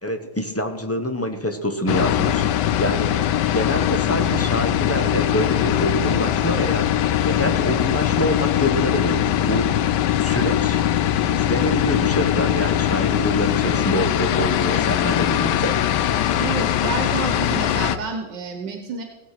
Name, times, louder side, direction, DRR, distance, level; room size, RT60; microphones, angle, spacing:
voice 1, 0.0-3.2 3.5-6.9 7.3-10.8 11.3-15.8, equal, 10° left, 6 dB, 0.7 m, -26 dB
sound 1, 1.9-18.0, left 11 dB, 85° left, 1.3 m, -21 dB
voice 2, 16.4-19.0, right 5 dB, 80° right, 5 dB, 1.8 m, -29 dB
17.5 x 8.3 x 5.9 m, 1.2 s
omnidirectional pair, 1.9 m